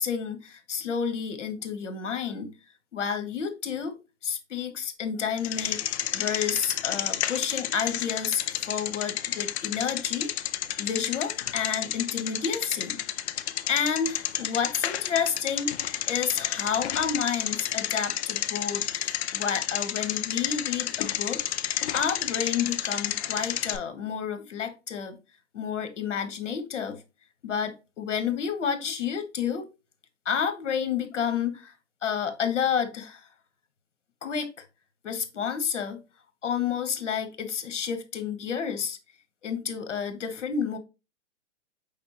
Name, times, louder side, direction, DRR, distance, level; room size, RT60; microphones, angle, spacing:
voice 1, 0.0-2.5 2.9-10.3 10.8-13.0 13.7-21.4 21.9-25.2 25.5-27.0 27.4-29.7 30.2-31.7 32.0-33.3 34.2-34.6 35.0-36.0 36.4-39.0 39.4-40.8, left 7 dB, 90° left, 1.0 m, -30 dB
Bicycle, 5.4-23.8, left 11 dB, 65° left, 0.5 m, -31 dB
5.0 x 3.4 x 2.9 m
hypercardioid pair, 145°, 36 cm